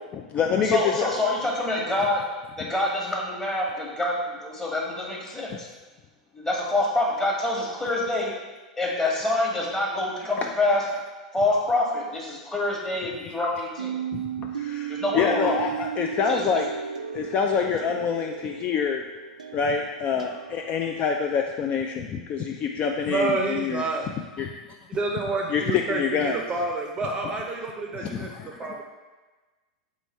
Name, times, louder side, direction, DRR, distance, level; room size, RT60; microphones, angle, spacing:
voice 1, 0.1-1.1 14.1-16.6 17.1-19.0 19.5-23.8 24.4-24.5 25.5-25.6 25.9-26.4 28.0-28.8, left 6 dB, 35° left, 2 dB, 0.3 m, -26 dB
voice 2, 0.6-2.2 2.6-5.7 6.3-8.3 8.8-10.8 11.3-14.0 14.9-15.6 16.3-16.6, left 2 dB, 15° left, -3 dB, 1.1 m, -26 dB
sound 1, 13.8-21.1, right 8 dB, 85° right, 0.4 m, -35 dB
voice 3, 23.0-24.1 24.9-28.8, right 3 dB, 25° right, 1 dB, 0.5 m, -29 dB
3.6 x 3.1 x 4.1 m, 1.2 s
hypercardioid pair, 95°, 4 cm